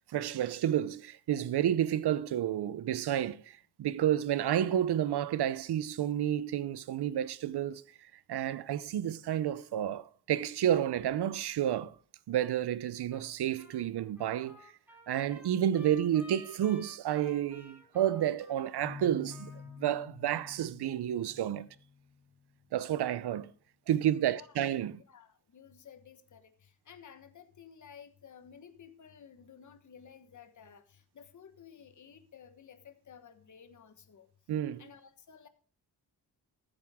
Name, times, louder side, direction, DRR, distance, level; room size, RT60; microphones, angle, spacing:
voice 1, 0.1-12.0 12.3-14.7 15.1-21.7 22.7-23.5 23.9-25.0 34.5-34.8, right 11 dB, 80° right, 0.7 m, -30 dB
Trumpet, 13.1-13.3 13.6-19.8, left 1 dB, 5° right, 5.7 m, -55 dB
sound 1, 18.8-22.5, left 5 dB, 30° right, 4.0 m, -49 dB
voice 2, 24.3-34.3 34.8-35.5, left 7 dB, 50° left, 1.3 m, -54 dB
14.5 x 9.1 x 3.6 m
wide cardioid pair, 135°, 39 cm